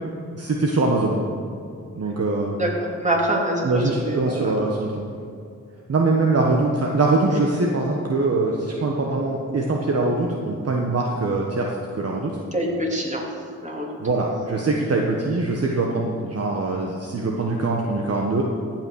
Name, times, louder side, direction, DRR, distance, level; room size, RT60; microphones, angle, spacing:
voice 1, 0.4-1.2 2.0-2.5 3.6-5.0 5.9-12.3 14.0-18.4, right 3 dB, 50° right, 0 dB, 1.3 m, -23 dB
voice 2, 2.6-4.5 12.5-13.2 13.6-14.0, right 1 dB, 20° right, -1 dB, 2.9 m, -25 dB
15.0 x 6.0 x 6.4 m, 2.4 s
cardioid pair, 60°, 32 cm